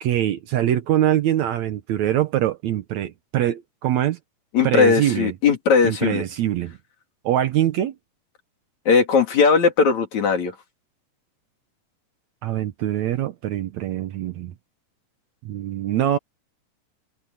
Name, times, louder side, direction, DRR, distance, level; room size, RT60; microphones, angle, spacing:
voice 1, 0.0-4.2 4.6-5.3 5.8-6.8 7.2-7.9 12.4-14.5 15.5-16.2, right 12 dB, 70° right, 2.0 m, -23 dB
voice 2, 4.5-6.2 8.9-10.5, left 5 dB, 60° left, 4.2 m, -18 dB
omnidirectional pair, 3.8 m